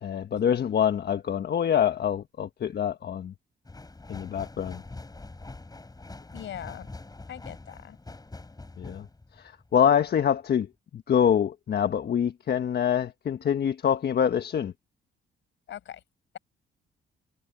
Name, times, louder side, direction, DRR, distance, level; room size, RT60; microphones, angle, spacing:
voice 1, 0.0-3.3 4.1-4.8 8.8-9.1 9.4-14.7, left 8 dB, 55° left, 1.4 m, -25 dB
sound 1, 3.6-10.2 10.6-10.7, left 2 dB, 20° left, 7.8 m, -44 dB
voice 2, 6.3-6.9 7.3-8.0 15.7-16.0, left 11 dB, 70° left, 6.9 m, -40 dB
cardioid pair, 90°, 20 cm